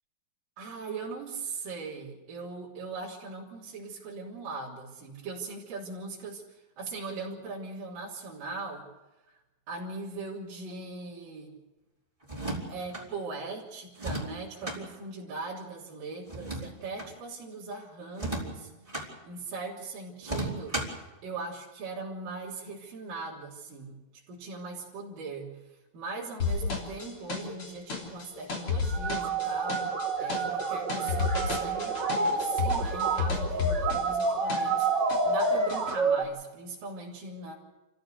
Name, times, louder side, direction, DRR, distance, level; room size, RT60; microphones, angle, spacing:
voice 1, 0.6-6.4 6.8-8.9 9.7-11.6 12.7-20.8 21.2-24.0 24.3-25.6 25.9-29.9 30.2-34.9 35.3-37.5, right 3 dB, 65° right, -6 dB, 4.9 m, -40 dB
sound 1, 12.2-13.1 13.9-14.8 16.3-17.1 18.1-19.1 20.2-21.0, right 1 dB, 10° right, 3.8 m, -35 dB
sound 2, 26.4-34.8 35.1-35.9, left 4 dB, 35° left, 4.0 m, -32 dB
sound 3, 28.9-36.2, right 4 dB, 40° right, 1.8 m, -29 dB
29.5 x 15.0 x 6.6 m, 1.1 s
omnidirectional pair, 4.4 m